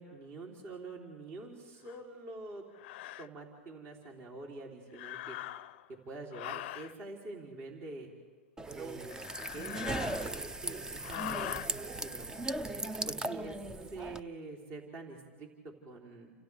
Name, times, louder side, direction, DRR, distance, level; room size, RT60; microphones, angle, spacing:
voice 1, 0.0-2.6 3.2-5.4 6.1-8.1 8.8-12.3 13.1-13.6 13.9-16.3, right 3 dB, 40° right, -1 dB, 3.5 m, -46 dB
sound 1, 1.9-2.0 2.8-3.3 4.9-5.9 6.3-6.9 9.1-10.6 11.0-11.7, left 16 dB, 55° left, 0.6 m, -42 dB
sound 2, 8.6-14.2, right 2 dB, 10° right, 0.6 m, -38 dB
30.0 x 26.5 x 3.5 m, 1.4 s
hypercardioid pair, 120°, 7 cm